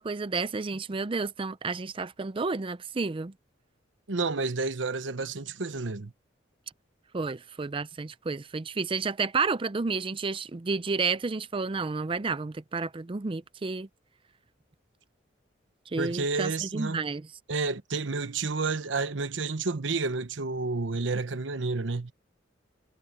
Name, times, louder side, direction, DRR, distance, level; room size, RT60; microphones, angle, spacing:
voice 1, 0.0-3.3 7.1-13.9 15.9-17.3, right 4 dB, 30° right, 0.5 m, -31 dB
voice 2, 4.1-6.1 16.0-17.0 17.5-22.1, right 3 dB, 90° right, 1.0 m, -30 dB
head